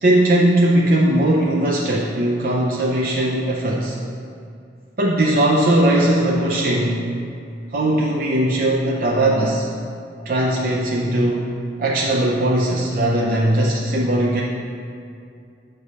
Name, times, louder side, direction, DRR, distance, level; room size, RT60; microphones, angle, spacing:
voice 1, 0.0-4.0 5.0-7.1 7.7-9.7 10.3-11.5 11.8-14.4, right 1 dB, 50° right, -3 dB, 0.5 m, -19 dB
8.3 x 3.3 x 5.4 m, 2.4 s
head